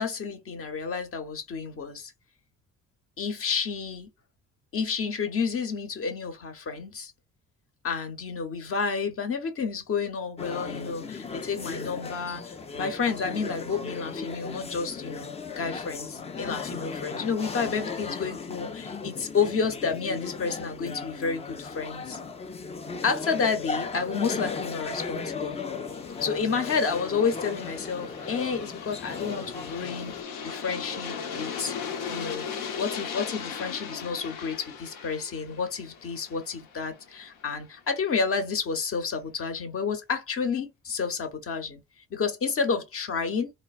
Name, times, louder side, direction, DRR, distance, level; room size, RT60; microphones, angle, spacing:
voice 1, 0.0-2.1 3.2-4.1 4.7-7.1 7.8-22.2 23.0-25.6 26.2-31.7 32.1-32.4 32.7-41.8 42.1-43.5, left 5 dB, 45° left, 0.8 m, -30 dB
sound 1, 10.4-30.2, left 4 dB, 20° left, 0.4 m, -36 dB
Aircraft, 25.0-37.5, left 6 dB, 75° left, 0.7 m, -38 dB
3.2 x 2.1 x 2.4 m
supercardioid pair, 60°, 32 cm